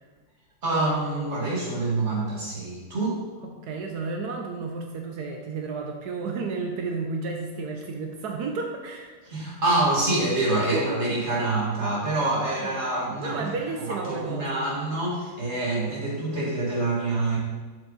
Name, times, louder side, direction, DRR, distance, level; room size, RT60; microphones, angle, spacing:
voice 1, 0.6-3.2 9.3-13.5 13.9-17.4, right 2 dB, 45° right, -5 dB, 2.4 m, -26 dB
voice 2, 3.4-9.2 10.7-11.0 12.6-12.8 13.2-14.7, right 4 dB, 75° right, 2 dB, 1.3 m, -32 dB
7.3 x 7.2 x 4.1 m, 1.4 s
omnidirectional pair, 1.7 m